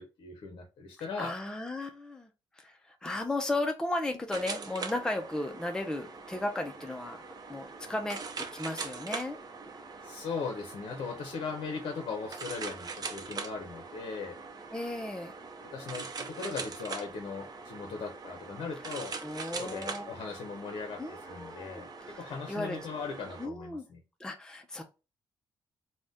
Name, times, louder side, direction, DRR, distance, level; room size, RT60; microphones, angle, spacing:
voice 1, 0.0-1.4 10.0-14.4 15.6-19.2 19.5-24.0, left 5 dB, 65° left, 0.6 m, -39 dB
voice 2, 1.2-2.3 2.6-7.2 7.5-9.4 14.7-15.3 19.2-20.2 21.0-22.2 22.5-22.8 23.4-23.8 24.2-24.8, left 2 dB, 5° left, 0.4 m, -35 dB
sound 1, 4.3-23.5, right 4 dB, 45° right, 0.6 m, -42 dB
2.6 x 2.1 x 3.4 m
supercardioid pair, 65°, 9 cm